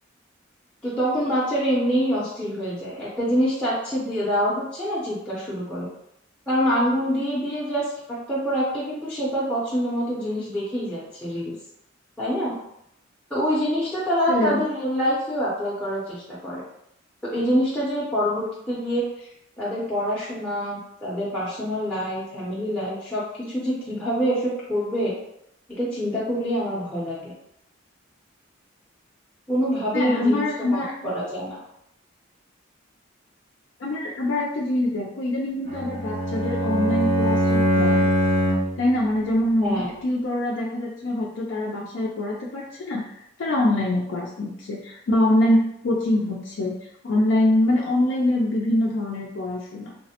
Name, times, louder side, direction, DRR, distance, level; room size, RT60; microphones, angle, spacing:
voice 1, 0.8-5.9 6.5-11.6 12.2-12.6 13.3-16.6 17.2-19.0 19.6-25.1 25.7-27.3 29.5-30.4 30.7-31.6 39.6-39.9, equal, 5° left, -9 dB, 0.5 m, -25 dB
voice 2, 14.3-14.6 29.9-31.1 33.8-38.1 38.8-46.8 47.0-49.9, left 1 dB, 65° left, -4 dB, 0.4 m, -24 dB
Bowed string instrument, 35.7-38.8, equal, 85° right, 1.3 m, -22 dB
3.2 x 2.0 x 2.8 m, 0.77 s
head